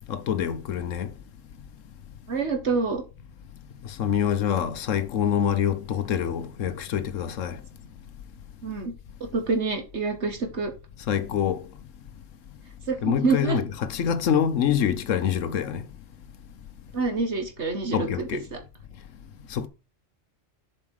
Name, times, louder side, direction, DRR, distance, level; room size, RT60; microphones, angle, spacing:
voice 1, 0.1-1.1 3.8-7.6 11.1-11.6 13.0-15.8 17.9-18.4 19.5-19.7, left 8 dB, 75° left, 1.2 m, -25 dB
voice 2, 2.3-3.0 8.6-8.9 9.3-10.7 12.9-13.6 16.9-18.6, right 4 dB, 60° right, 2.0 m, -27 dB
7.3 x 5.2 x 4.8 m
omnidirectional pair, 1.3 m